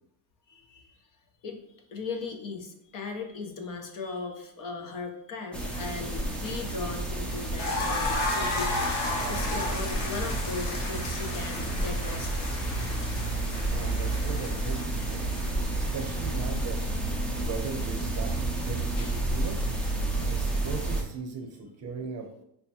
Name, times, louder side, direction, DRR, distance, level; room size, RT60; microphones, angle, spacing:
voice 1, 0.5-1.0 1.4-1.6 1.9-13.1 19.0-19.2, left 4 dB, 45° left, 3 dB, 0.7 m, -38 dB
sound 1, 5.5-21.0, right 2 dB, ahead, 0.4 m, -30 dB
sound 2, 7.6-16.3, left 2 dB, 65° left, 1.1 m, -34 dB
voice 2, 13.7-15.3 15.8-16.8 17.3-19.6 20.2-22.3, right 5 dB, 35° right, 3 dB, 0.7 m, -38 dB
5.6 x 2.2 x 2.8 m, 0.75 s
cardioid pair, 125°, 46 cm